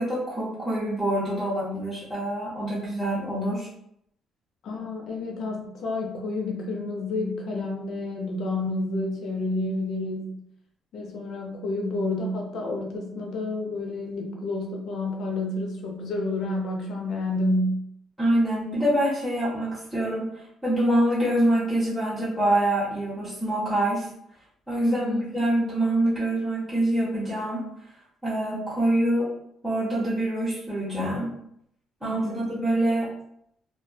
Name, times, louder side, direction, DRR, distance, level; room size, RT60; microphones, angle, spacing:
voice 1, 0.0-3.7 18.2-20.3 20.6-24.1 24.7-27.6 28.2-29.3 29.6-31.3 32.0-33.1, right 1 dB, ahead, -9 dB, 0.8 m, -25 dB
voice 2, 4.6-10.4 10.9-17.8 24.8-25.2 32.0-32.5, left 2 dB, 65° left, 1 dB, 0.5 m, -29 dB
2.3 x 2.1 x 2.6 m, 0.73 s
cardioid pair, 125°, 0 cm